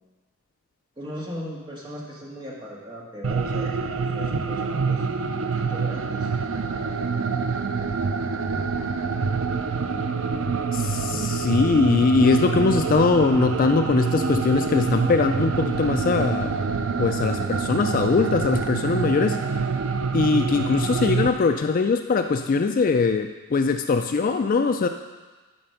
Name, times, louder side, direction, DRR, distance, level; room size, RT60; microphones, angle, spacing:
voice 1, 1.0-6.3 11.1-11.5, equal, 20° right, -4 dB, 1.7 m, -38 dB
sound 1, 3.2-21.3, right 5 dB, 60° right, 0.5 m, -26 dB
voice 2, 10.7-16.5 17.0-19.4 20.1-24.9, left 4 dB, 40° left, 7 dB, 0.3 m, -21 dB
11.0 x 5.0 x 5.7 m, 1.3 s
head